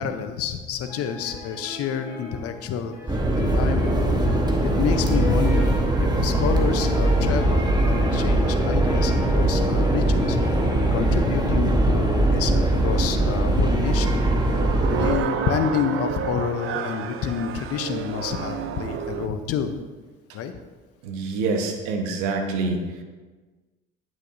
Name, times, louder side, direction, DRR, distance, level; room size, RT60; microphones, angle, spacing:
voice 1, 0.0-4.0 4.8-10.4 10.9-14.2 15.0-19.7 20.3-20.5, left 7 dB, 55° left, 9 dB, 0.8 m, -28 dB
sound 1, 0.9-11.5, left 2 dB, 75° left, 2.2 m, -36 dB
sound 2, 3.1-15.1, right 1 dB, 15° right, 1.2 m, -21 dB
sound 3, 13.8-19.3, right 8 dB, 45° right, 0.6 m, -31 dB
voice 2, 21.0-22.9, right 3 dB, 70° right, 4 dB, 1.2 m, -26 dB
10.0 x 6.2 x 2.7 m, 1.3 s
hypercardioid pair, 65°, 29 cm